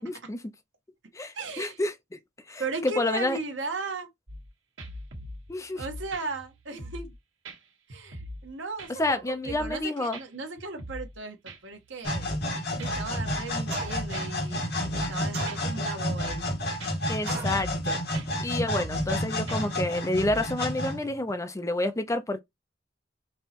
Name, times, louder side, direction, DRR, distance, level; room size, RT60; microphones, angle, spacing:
voice 1, 0.0-0.4 1.1-2.2 2.5-3.4 5.5-5.8 9.0-10.2 17.1-18.0 18.4-22.4, left 2 dB, 15° left, 0.5 m, -29 dB
voice 2, 1.3-1.8 2.6-4.1 5.7-7.1 7.9-12.3 12.8-16.5, right 3 dB, 70° right, 1.2 m, -36 dB
sound 1, 4.3-4.5 4.8-7.2 7.4-7.6 7.9-8.5 8.8-9.8 10.1-10.2 10.6-11.2 11.5-12.5 12.8-14.5 14.8-15.2 15.5-15.6 15.9-16.5 16.8-17.1 17.5-17.8 18.1-18.3 18.6-19.2 19.5-20.5, equal, 90° right, 1.3 m, -42 dB
sound 2, 12.0-21.3, equal, 60° left, 2.1 m, -30 dB
sound 3, 13.7-14.2 15.3-16.0 17.3-17.7, right 5 dB, 55° right, 1.4 m, -39 dB
5.4 x 3.0 x 2.9 m
head